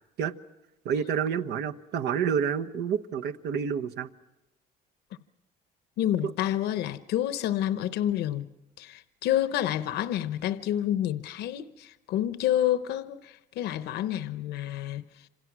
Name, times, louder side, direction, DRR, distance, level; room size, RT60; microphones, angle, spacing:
voice 1, 0.8-4.1, right 7 dB, 80° right, 1.2 m, -28 dB
voice 2, 6.0-8.5 8.8-15.0, left 12 dB, 80° left, 0.8 m, -29 dB
27.0 x 27.0 x 6.2 m
cardioid pair, 110°, 17 cm